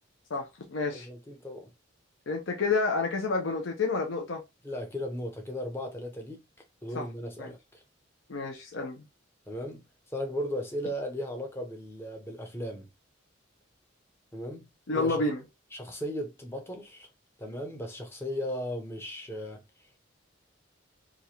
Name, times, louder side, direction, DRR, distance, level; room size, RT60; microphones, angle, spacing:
voice 1, 0.3-1.1 2.3-4.4 6.9-7.0 7.4-7.5 8.3-9.0 14.9-15.4, left 3 dB, 75° left, 0.6 m, -29 dB
voice 2, 0.9-1.7 4.6-6.4 6.8-7.8 9.5-12.9 14.3-14.7 14.9-15.2 15.7-17.1 17.4-19.6, equal, 10° left, 0.6 m, -36 dB
3.0 x 2.4 x 2.8 m
head